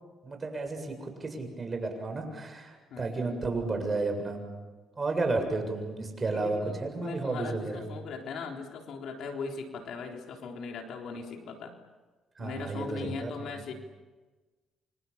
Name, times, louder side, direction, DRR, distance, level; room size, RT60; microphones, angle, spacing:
voice 1, 0.2-4.5 5.0-7.8 12.4-13.6, right 3 dB, 30° right, 5 dB, 7.4 m, -32 dB
voice 2, 2.9-3.4 6.2-11.7 12.4-13.7, left 4 dB, 75° left, 2 dB, 3.8 m, -39 dB
29.5 x 25.5 x 7.2 m, 1.3 s
cardioid pair, 100°, 0 cm